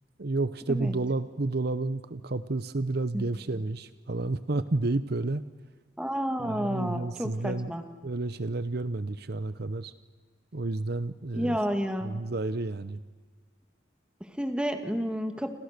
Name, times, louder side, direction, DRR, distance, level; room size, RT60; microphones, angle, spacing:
voice 1, 0.2-5.4 6.4-7.7 8.0-9.9 10.5-11.6 12.0-13.0, right 2 dB, 55° right, 14 dB, 0.8 m, -30 dB
voice 2, 6.0-7.8 11.4-12.3 14.2-15.5, equal, 5° right, 7 dB, 2.0 m, -30 dB
29.5 x 27.0 x 6.7 m, 1.4 s
head